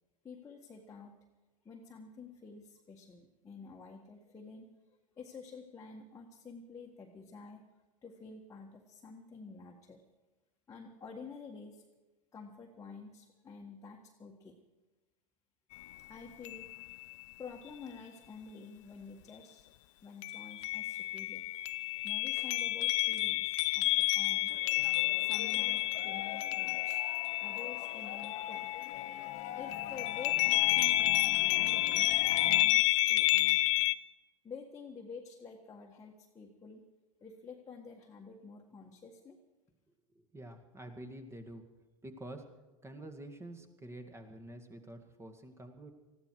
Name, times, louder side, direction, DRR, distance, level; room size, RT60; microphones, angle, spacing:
voice 1, 0.2-1.1 1.6-4.7 5.2-7.6 8.0-10.0 10.7-11.8 12.3-14.6 16.1-16.7 17.4-19.7 20.0-21.4 22.0-24.5 25.2-27.0 27.4-28.7 29.5-32.1 32.4-33.6 34.4-36.8 37.2-39.4, left 5 dB, 15° left, 0 dB, 1.6 m, -49 dB
sound 1, 15.7-15.8 16.4-17.0 20.2-29.4 29.7-33.9, left 18 dB, 60° left, 0.7 m, -30 dB
sound 2, 24.5-32.6, left 11 dB, 40° left, 1.3 m, -43 dB
voice 2, 40.1-41.7 42.0-42.4 42.8-45.9, right 1 dB, 15° right, 6 dB, 2.1 m, -48 dB
20.0 x 15.0 x 4.7 m, 1.1 s
hypercardioid pair, 95°, 18 cm